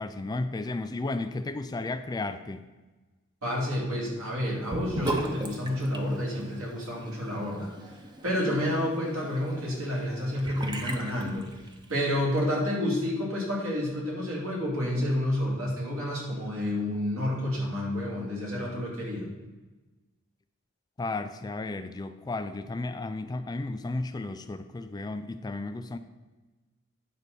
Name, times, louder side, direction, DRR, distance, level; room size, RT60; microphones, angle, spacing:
voice 1, 0.0-2.6 21.0-26.0, left 2 dB, 20° left, 10 dB, 0.3 m, -33 dB
voice 2, 3.4-7.9 8.2-11.5 11.9-19.3, left 1 dB, 70° right, -4 dB, 3.0 m, -29 dB
Sink (filling or washing) / Bathtub (filling or washing), 4.7-12.0, right 1 dB, 20° right, 0.8 m, -38 dB
9.7 x 4.0 x 6.7 m, 1.2 s
head